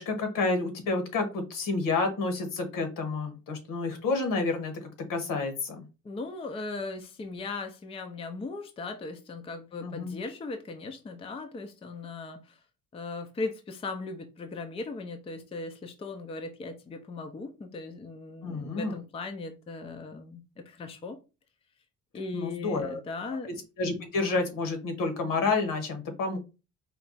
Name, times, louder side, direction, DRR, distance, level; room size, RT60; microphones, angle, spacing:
voice 1, 0.0-5.8 9.8-10.2 18.4-18.9 22.3-23.0 23.8-26.4, left 3 dB, 70° left, 1.4 m, -29 dB
voice 2, 6.0-12.6 12.9-21.2 22.1-23.5, left 3 dB, 20° left, 0.5 m, -38 dB
4.4 x 2.3 x 3.9 m
cardioid pair, 150°, 34 cm